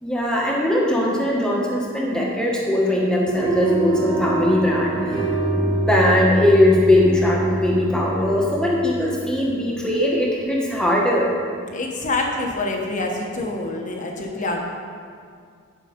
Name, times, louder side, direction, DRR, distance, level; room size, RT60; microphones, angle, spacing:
voice 1, 0.0-5.3 5.5-11.3, left 1 dB, 5° left, -3 dB, 1.3 m, -20 dB
sound 1, 3.2-9.5, right 2 dB, 20° right, 2.0 m, -25 dB
voice 2, 11.7-14.6, left 2 dB, 40° left, 1 dB, 1.1 m, -26 dB
10.5 x 5.0 x 5.1 m, 2.1 s
head